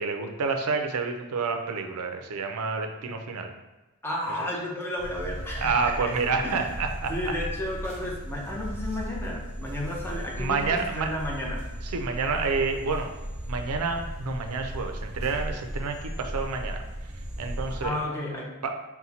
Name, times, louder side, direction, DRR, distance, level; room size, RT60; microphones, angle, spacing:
voice 1, 0.0-3.5 5.6-7.1 10.4-11.1 11.9-13.1 13.5-16.8 17.4-17.9 18.6-18.7, right 4 dB, 80° right, 5 dB, 0.5 m, -28 dB
voice 2, 4.0-5.9 6.4-6.8 7.1-11.6 17.7-18.5, left 1 dB, 10° left, -3 dB, 0.7 m, -33 dB
sound 1, 5.0-17.9, equal, 30° right, 0.7 m, -36 dB
4.2 x 2.2 x 4.0 m, 1.1 s
head